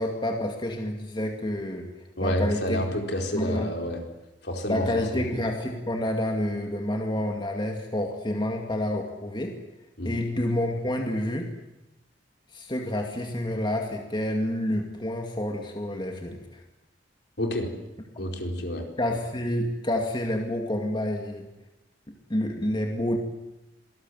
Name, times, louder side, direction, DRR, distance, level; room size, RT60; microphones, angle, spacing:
voice 1, 0.0-1.9 2.2-2.8 3.3-3.7 4.7-9.5 10.0-11.5 12.5-16.6 19.0-21.5 22.1-23.2, left 1 dB, 25° left, 3 dB, 2.3 m, -29 dB
voice 2, 2.2-4.0 4.4-4.8 5.1-5.3 10.0-10.1 17.4-17.7 18.2-18.8, equal, 60° left, 3 dB, 4.5 m, -28 dB
26.0 x 19.5 x 9.3 m, 0.97 s
head